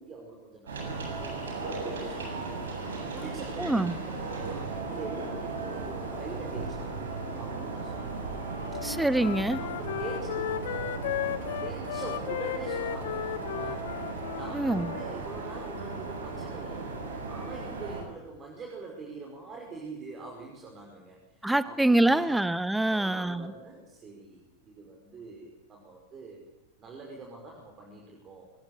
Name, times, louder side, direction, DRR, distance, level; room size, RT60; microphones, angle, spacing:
voice 1, 0.0-2.5 3.1-8.1 8.7-8.8 9.6-11.1 11.6-13.9 14.3-16.9 17.3-22.4 22.9-26.5 26.8-28.5, right 3 dB, 25° right, 0 dB, 5.7 m, -44 dB
sound 1, 0.7-18.0, right 3 dB, 65° right, 7.8 m, -36 dB
voice 2, 3.6-4.0 8.8-9.6 14.5-14.9 21.4-23.5, right 1 dB, 5° right, 16 dB, 1.0 m, -25 dB
Wind instrument woodwind instrument, 8.7-15.1, left 12 dB, 55° left, 1.2 m, -35 dB
24.5 x 19.5 x 8.8 m, 0.95 s
figure-of-eight pair, 90°, 0 cm